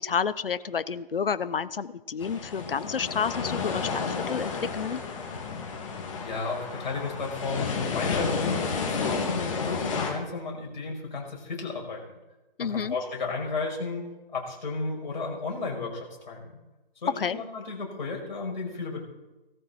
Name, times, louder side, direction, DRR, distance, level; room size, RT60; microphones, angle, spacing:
voice 1, 0.0-5.0 12.6-12.9 17.2-17.4, left 6 dB, 70° left, 16 dB, 0.9 m, -30 dB
sound 1, 2.2-10.1, left 5 dB, 35° left, 2.6 m, -31 dB
voice 2, 6.2-12.0 12.6-14.0 14.3-16.6 17.0-19.0, left 3 dB, 50° left, -1 dB, 5.8 m, -33 dB
18.0 x 14.0 x 4.4 m, 1.1 s
figure-of-eight pair, 155°, 30 cm